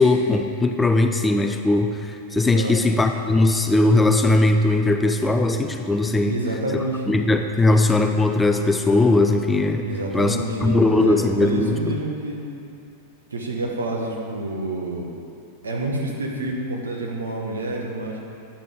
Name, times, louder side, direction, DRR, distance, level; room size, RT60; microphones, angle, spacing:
voice 1, 0.0-6.4 7.1-9.8 10.1-11.8, left 2 dB, 10° left, 6 dB, 0.4 m, -19 dB
voice 2, 6.2-7.1 9.8-12.4 13.3-15.1 15.6-18.2, right 2 dB, 75° right, 0 dB, 1.1 m, -28 dB
10.0 x 6.8 x 3.6 m, 2.6 s
figure-of-eight pair, 90°, 0 cm